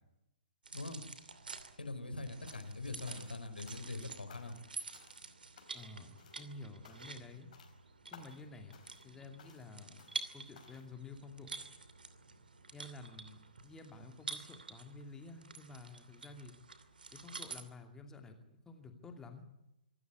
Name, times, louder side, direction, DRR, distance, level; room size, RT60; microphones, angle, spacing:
sound 1, 0.6-17.6, right 4 dB, 65° right, 2.7 m, -49 dB
voice 1, 1.8-4.5, left 2 dB, 75° left, 8 dB, 3.8 m, -42 dB
sound 2, 2.5-2.8 3.1-4.0 4.3-4.7 4.9-5.3 5.6-5.9 6.2-6.5 6.8-7.2 7.5-7.8 8.1-8.5 8.7-9.1 9.4-9.7 10.0-10.3 10.5-10.9, left 6 dB, 45° left, 4.3 m, -59 dB
voice 2, 5.7-7.5 8.1-11.7 12.7-16.5 17.1-19.5, left 3 dB, 10° left, 5 dB, 2.6 m, -51 dB
26.0 x 14.0 x 9.7 m, 0.89 s
figure-of-eight pair, 125°, 5 cm